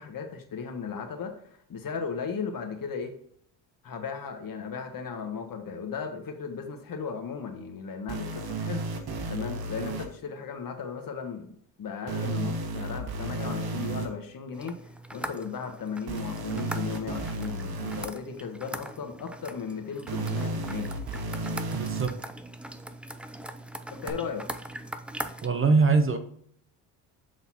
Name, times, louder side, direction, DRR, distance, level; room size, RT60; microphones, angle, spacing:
voice 1, 0.0-3.1 3.8-9.0 9.3-20.9 23.9-24.5, left 6 dB, 50° left, 1.4 m, -36 dB
sound 1, 8.1-10.1 12.1-14.1 16.1-18.1 20.1-22.1 24.1-24.2, right 3 dB, 55° right, 1.3 m, -33 dB
sound 2, 14.5-25.5, right 1 dB, 5° right, 0.4 m, -41 dB
voice 2, 21.7-22.1 25.4-26.2, right 4 dB, 30° right, 0.8 m, -22 dB
7.7 x 4.1 x 4.2 m
cardioid pair, 95°, 43 cm